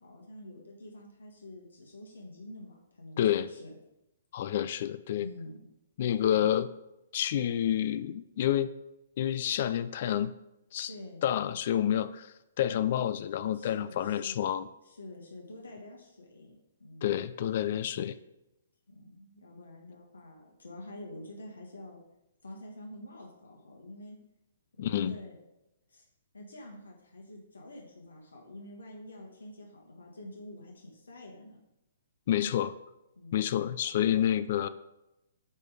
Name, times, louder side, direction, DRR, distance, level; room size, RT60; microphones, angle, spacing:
voice 1, 0.0-3.8 5.2-5.6 10.9-11.3 13.5-17.2 18.9-22.0 22.4-24.2 24.8-25.4 25.9-26.0 26.3-31.6 33.1-33.5, left 1 dB, 85° left, 0 dB, 1.6 m, -47 dB
voice 2, 3.2-3.5 4.3-5.3 6.0-6.7 7.1-8.7 9.2-10.3 10.7-10.9 11.2-14.7 17.0-18.2 24.8-25.1 32.3-32.7 33.3-34.7, left 10 dB, 50° left, 14 dB, 0.3 m, -29 dB
8.3 x 3.4 x 4.9 m, 0.91 s
hypercardioid pair, 135°, 0 cm